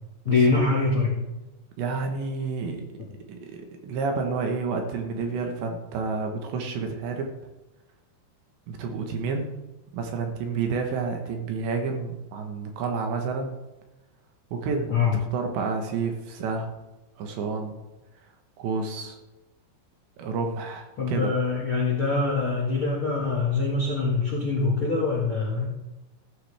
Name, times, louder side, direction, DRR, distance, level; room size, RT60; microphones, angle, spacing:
voice 1, 0.2-1.1 14.9-15.1 21.0-25.7, left 4 dB, 60° left, -4 dB, 1.4 m, -24 dB
voice 2, 1.8-3.0 3.3-7.3 8.7-9.5 9.9-13.6 14.5-16.7 17.2-17.8 18.6-19.2 20.2-21.3, right 4 dB, 70° right, 3 dB, 3.2 m, -30 dB
15.5 x 13.5 x 3.5 m, 1.0 s
omnidirectional pair, 5.7 m